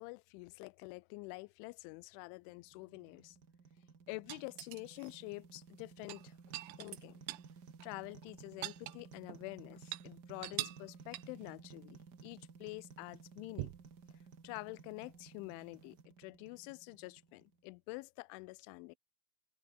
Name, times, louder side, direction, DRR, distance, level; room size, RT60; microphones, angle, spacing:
voice 1, 0.0-3.4 4.1-6.4 6.8-7.2 7.8-13.7 14.4-19.0, left 25 dB, 85° left, 2.9 m, -47 dB
sound 1, 2.5-17.7, right 5 dB, 45° right, 1.3 m, -56 dB
sound 2, 4.3-5.1 6.0-7.5 7.8-7.9 8.2-9.4 9.8-10.1 10.4-10.9 11.1-11.5 13.6-13.9 15.6-15.7, right 18 dB, 75° right, 2.7 m, -43 dB
omnidirectional pair, 5.6 m